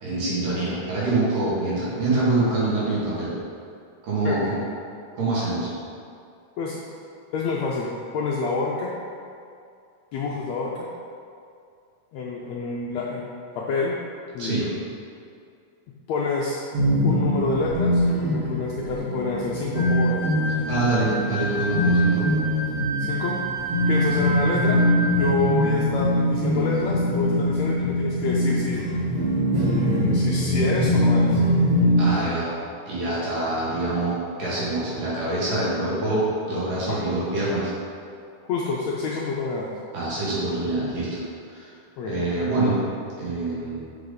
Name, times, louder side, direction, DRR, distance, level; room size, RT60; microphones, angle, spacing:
voice 1, 0.0-3.3 4.0-4.6 5.2-5.7 14.4-14.7 20.7-22.3 32.0-32.5 32.9-37.7 39.9-41.2 41.5-41.7 42.1-42.8 43.2-43.9, right 2 dB, 75° right, -8 dB, 3.6 m, -25 dB
voice 2, 7.3-8.9 10.1-10.9 12.1-13.3 13.5-13.9 14.3-14.7 16.1-16.6 17.0-20.2 23.0-23.4 23.9-24.8 25.2-28.8 29.7-31.4 36.9-37.0 38.5-39.7 42.0-42.2, left 4 dB, 80° left, -3 dB, 1.5 m, -28 dB
sound 1, 16.7-32.2, equal, 55° right, 2.7 m, -22 dB
sound 2, 19.7-25.8, right 2 dB, 35° right, 0.9 m, -31 dB
7.6 x 5.9 x 3.9 m, 2.4 s
omnidirectional pair, 3.8 m